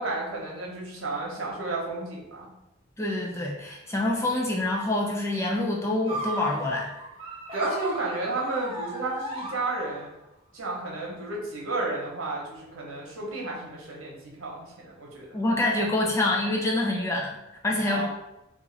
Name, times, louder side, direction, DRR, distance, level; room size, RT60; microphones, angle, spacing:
voice 1, 0.0-2.5 7.5-10.1 10.5-15.4 17.9-18.1, right 2 dB, 80° right, -2 dB, 0.9 m, -32 dB
voice 2, 3.0-6.9 15.3-17.4 17.6-18.1, left 2 dB, 15° left, -2 dB, 0.4 m, -26 dB
sound 1, 6.1-10.2, right 1 dB, 25° right, 0.8 m, -36 dB
3.0 x 2.5 x 3.8 m, 0.90 s
head